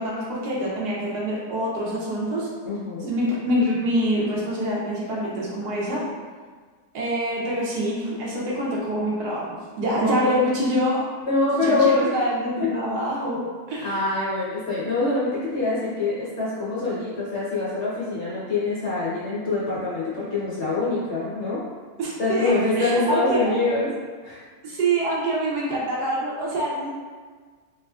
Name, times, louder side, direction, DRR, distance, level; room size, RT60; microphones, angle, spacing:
voice 1, 0.0-2.5 3.1-6.0 6.9-11.0 11.6-14.0 22.0-23.4 24.6-26.9, right 1 dB, 75° right, -5 dB, 1.2 m, -25 dB
voice 2, 2.6-3.1 10.0-10.4 11.2-12.1 12.6-12.7 13.8-21.6 22.2-23.9 24.2-24.4, left 3 dB, 55° left, -8 dB, 0.9 m, -24 dB
3.5 x 2.9 x 2.3 m, 1.5 s
omnidirectional pair, 1.8 m